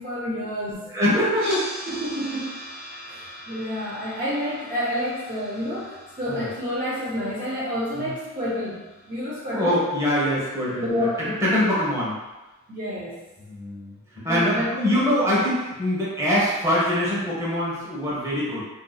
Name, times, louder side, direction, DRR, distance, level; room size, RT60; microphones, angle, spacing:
voice 1, 0.0-0.9 1.9-2.6 3.1-9.8 10.8-11.6 12.7-13.2 14.3-15.1, equal, 35° right, -9 dB, 0.5 m, -29 dB
voice 2, 0.9-1.7 6.3-6.5 7.9-8.1 9.5-11.1 11.4-12.2 13.5-13.9 14.2-18.6, equal, 15° right, -7 dB, 0.9 m, -23 dB
sound 1, 1.3-11.4, equal, 60° right, 1.3 m, -41 dB
3.8 x 2.7 x 2.2 m, 1.1 s
head